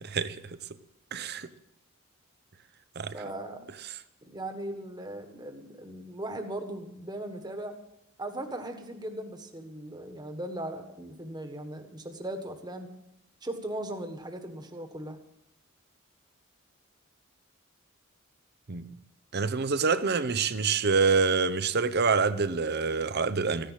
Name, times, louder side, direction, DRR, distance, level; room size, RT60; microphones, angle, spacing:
voice 1, 0.0-0.4 1.1-1.5 3.0-3.1 18.7-18.9 19.3-23.7, right 4 dB, 50° right, 0.8 m, -26 dB
voice 2, 3.1-3.7 4.2-7.8 8.2-12.9 13.4-15.2, right 1 dB, 20° right, 1.5 m, -38 dB
15.0 x 10.5 x 7.5 m
head